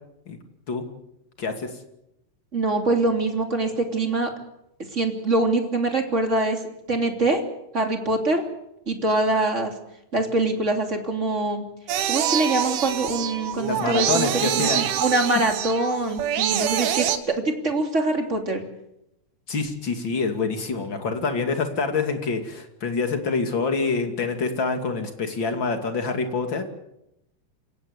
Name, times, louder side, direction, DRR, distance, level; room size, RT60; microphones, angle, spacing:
voice 1, 1.4-1.7 13.6-14.9 19.5-26.6, left 4 dB, 35° left, 5 dB, 2.4 m, -26 dB
voice 2, 2.5-4.3 4.9-6.6 6.9-7.4 7.7-8.4 8.9-9.7 10.1-11.6 12.1-18.6, right 2 dB, 20° right, 4 dB, 2.5 m, -24 dB
sound 1, 11.9-17.2, right 10 dB, 65° right, 3.0 m, -25 dB
28.0 x 16.5 x 8.3 m, 0.85 s
omnidirectional pair, 5.2 m